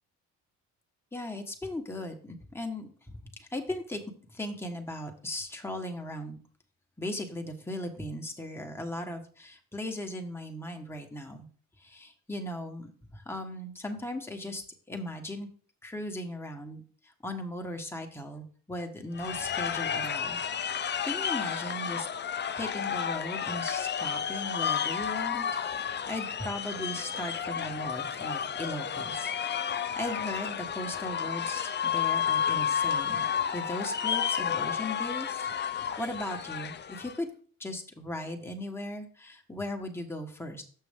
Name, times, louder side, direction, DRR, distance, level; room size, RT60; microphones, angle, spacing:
voice 1, 1.1-4.0 4.3-6.4 7.0-11.5 11.8-14.6 14.9-15.5 15.8-16.8 17.2-20.4 20.7-25.6 25.8-33.2 33.5-37.3 37.6-40.6, left 1 dB, 5° left, 3 dB, 1.3 m, -38 dB
sound 1, 19.2-37.2, left 8 dB, 30° left, 0.5 m, -31 dB
6.5 x 6.0 x 3.6 m, 0.44 s
cardioid pair, 75°, 34 cm